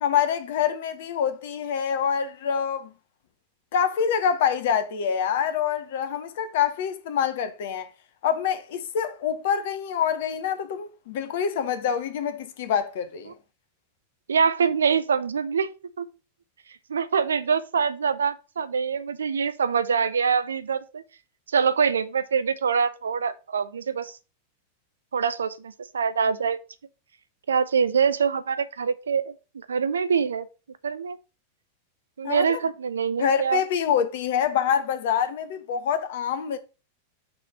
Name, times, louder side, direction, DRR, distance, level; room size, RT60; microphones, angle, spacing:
voice 1, 0.0-2.9 3.7-7.9 8.2-13.3 32.2-32.6 33.2-36.6, left 8 dB, 55° left, 0.7 m, -26 dB
voice 2, 14.3-15.7 16.0-16.1 16.9-21.0 21.5-24.1 25.1-26.6 27.5-30.5 30.8-31.2 32.2-33.6, right 6 dB, 70° right, 0.5 m, -24 dB
6.1 x 3.3 x 5.4 m
figure-of-eight pair, 90°, 0 cm